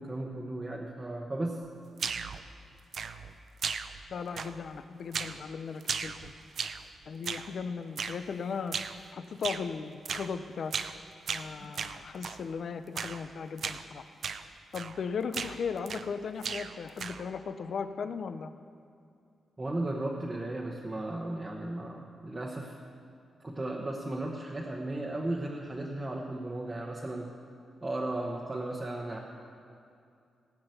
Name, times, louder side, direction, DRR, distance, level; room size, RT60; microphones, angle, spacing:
voice 1, 0.0-1.6 11.6-11.7 19.6-22.8 23.4-27.3 27.8-29.2, right 2 dB, 20° right, -2 dB, 1.1 m, -35 dB
sound 1, 2.0-2.4 2.9-3.3 3.6-4.1 4.4-4.7 5.1-5.4 5.8-6.9 7.2-7.5 8.0-8.2 8.7-9.0 9.4-9.7 10.0-10.3 10.7-11.0 11.3-12.4 12.9-13.2 13.6-13.8 14.2-14.4 14.7-15.0 15.3-16.1 16.4-17.3, right 6 dB, 60° right, 0.5 m, -36 dB
voice 2, 4.1-6.3 7.1-8.8 9.1-10.7 11.3-14.0 14.7-18.5, left 6 dB, 60° left, 11 dB, 0.6 m, -37 dB
17.5 x 5.9 x 8.0 m, 2.5 s
wide cardioid pair, 130°, 0 cm